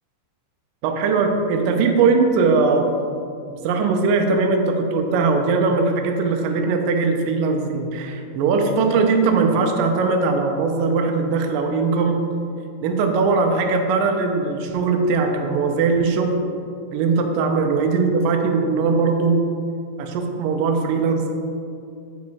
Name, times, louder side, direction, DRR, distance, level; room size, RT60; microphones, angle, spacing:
voice 1, 0.8-2.9 3.6-12.2 12.8-16.4 16.9-19.4 20.0-21.3, right 4 dB, 75° right, 4 dB, 2.2 m, -20 dB
9.4 x 4.8 x 4.1 m, 2.4 s
omnidirectional pair, 4.2 m